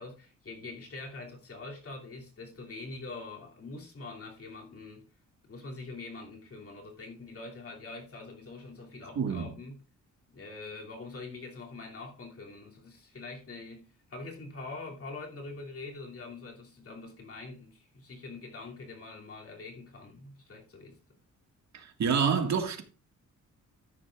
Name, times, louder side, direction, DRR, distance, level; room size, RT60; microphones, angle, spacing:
voice 1, 0.0-5.1 5.4-9.8 10.3-21.0, left 3 dB, 45° left, 2.9 m, -44 dB
voice 2, 9.2-9.5 21.7-22.8, right 6 dB, 60° right, 1.9 m, -27 dB
13.5 x 10.0 x 2.5 m
cardioid pair, 110°, 31 cm